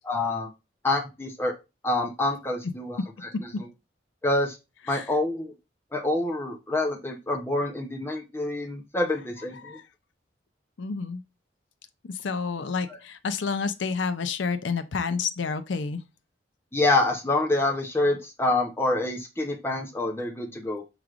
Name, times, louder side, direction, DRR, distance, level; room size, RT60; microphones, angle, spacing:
voice 1, 0.0-0.5 0.8-1.5 1.8-3.0 4.2-4.6 4.9-5.5 5.9-9.8 16.7-20.8, left 2 dB, 15° left, 0.6 m, -26 dB
voice 2, 10.8-11.2 12.2-16.0, left 5 dB, 80° left, 0.5 m, -29 dB
6.0 x 3.2 x 2.4 m
head